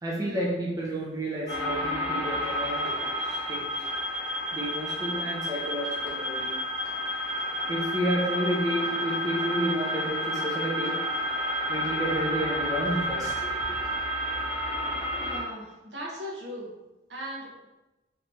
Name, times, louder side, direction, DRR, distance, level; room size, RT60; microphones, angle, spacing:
voice 1, 0.0-3.9 4.5-6.5 7.7-11.0 11.7-13.8, right 1 dB, 20° right, -4 dB, 0.5 m, -31 dB
sound 1, 1.5-15.4, equal, 40° left, 0.9 m, -30 dB
voice 2, 15.2-16.7 17.1-17.7, equal, 80° right, -4 dB, 0.9 m, -38 dB
2.8 x 2.6 x 3.3 m, 1.0 s
head